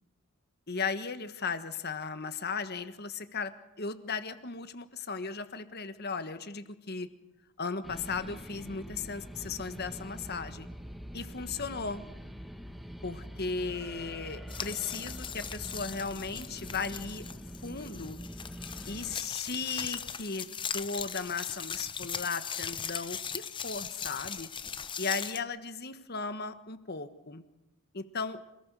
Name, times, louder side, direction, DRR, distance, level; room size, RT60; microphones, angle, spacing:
voice 1, 0.7-3.5 3.8-7.1 7.6-10.7 11.1-12.0 13.0-17.2 17.6-18.2 18.9-20.5 20.7-24.5 25.0-27.4 27.9-28.4, left 4 dB, 45° left, 11 dB, 1.4 m, -36 dB
sound 1, 7.8-19.2, equal, ahead, 1.2 m, -44 dB
sound 2, 14.5-25.4, left 7 dB, 20° left, 0.7 m, -39 dB
27.0 x 18.0 x 6.8 m, 0.93 s
head